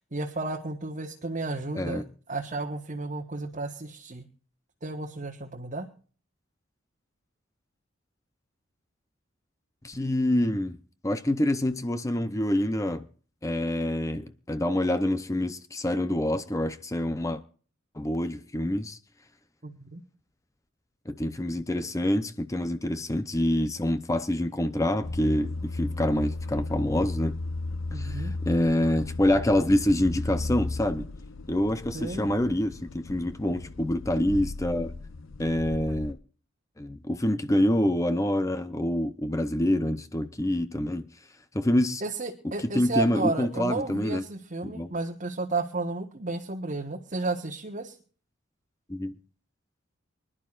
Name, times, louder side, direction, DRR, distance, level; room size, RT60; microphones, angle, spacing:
voice 1, 0.0-2.0 2.3-4.2 4.8-5.9 19.6-20.0 27.9-28.3 31.9-32.3 42.0-48.0, right 3 dB, 40° right, 1.3 m, -32 dB
voice 2, 1.7-2.1 9.8-10.8 11.0-13.1 13.4-17.4 17.9-19.0 21.1-27.4 27.9-31.1 31.5-34.9 35.4-36.2 36.8-41.1 41.5-42.0 42.7-44.2 44.6-44.9 48.9-49.2, left 1 dB, 15° left, 0.7 m, -26 dB
sound 1, 25.0-36.1, left 2 dB, 75° left, 0.7 m, -35 dB
25.0 x 11.5 x 2.5 m
head